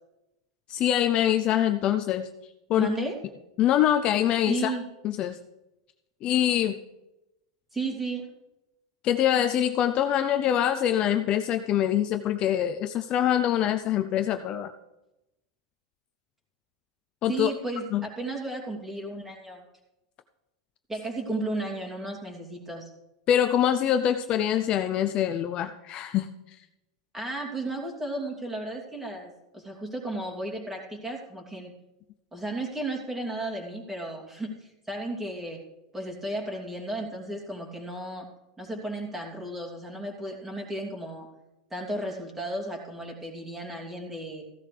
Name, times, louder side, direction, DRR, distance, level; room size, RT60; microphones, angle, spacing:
voice 1, 0.7-2.3 2.7-2.9 3.6-4.7 5.0-5.4 6.2-6.8 9.0-14.7 17.2-17.5 17.9-18.0 23.3-26.3, left 10 dB, 35° left, 8 dB, 0.5 m, -24 dB
voice 2, 2.8-3.2 4.5-4.9 7.7-8.3 17.3-19.6 20.9-22.9 27.1-31.7 32.3-35.6 35.9-38.3 38.6-41.3 41.7-44.4, right 2 dB, 10° right, -1 dB, 2.8 m, -34 dB
16.0 x 12.0 x 3.4 m, 0.96 s
supercardioid pair, 145°, 3 cm